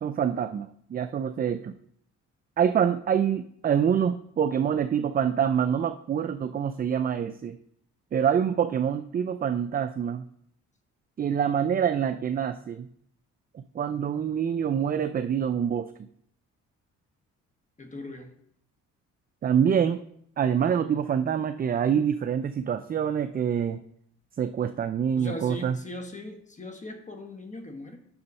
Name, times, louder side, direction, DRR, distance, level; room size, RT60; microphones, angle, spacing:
voice 1, 0.0-1.8 2.6-7.6 8.1-10.2 11.2-12.9 13.5-15.9 19.4-20.0 20.4-23.8 24.4-25.8, right 8 dB, 30° right, 10 dB, 0.4 m, -26 dB
voice 2, 17.8-18.3 25.2-28.0, left 1 dB, 25° left, 5 dB, 1.4 m, -39 dB
6.9 x 6.3 x 5.3 m, 0.69 s
cardioid pair, 90°, 30 cm